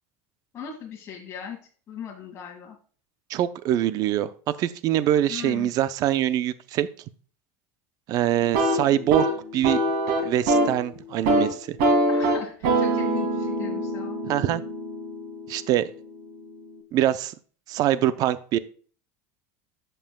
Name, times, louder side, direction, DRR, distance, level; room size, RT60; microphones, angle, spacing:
voice 1, 0.5-1.6 1.9-2.8 5.3-5.7 12.1-14.2, left 7 dB, 35° left, -2 dB, 1.7 m, -38 dB
voice 2, 3.3-4.3 4.6-6.9 8.1-9.3 9.5-9.8 10.2-11.8 14.2-14.6 15.5-15.9 16.9-17.3 17.7-18.6, right 12 dB, 50° right, 14 dB, 0.5 m, -24 dB
sound 1, 8.4-10.8 11.1-11.5 11.8-15.6, right 1 dB, 70° right, 2.8 m, -24 dB
16.0 x 5.6 x 2.2 m, 0.42 s
supercardioid pair, 100°, 8 cm